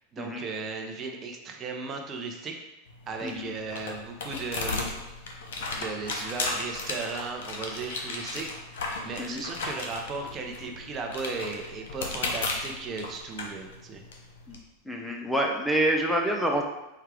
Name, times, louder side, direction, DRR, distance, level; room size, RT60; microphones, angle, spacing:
voice 1, 0.1-2.6 3.1-5.0 5.7-14.0, right 4 dB, 35° right, 3 dB, 0.7 m, -36 dB
sound 1, 2.9-14.6, left 3 dB, 75° left, 0.9 m, -35 dB
voice 2, 14.8-16.6, right 1 dB, ahead, 0 dB, 0.6 m, -27 dB
4.7 x 2.4 x 4.8 m, 0.93 s
hypercardioid pair, 110°, 0 cm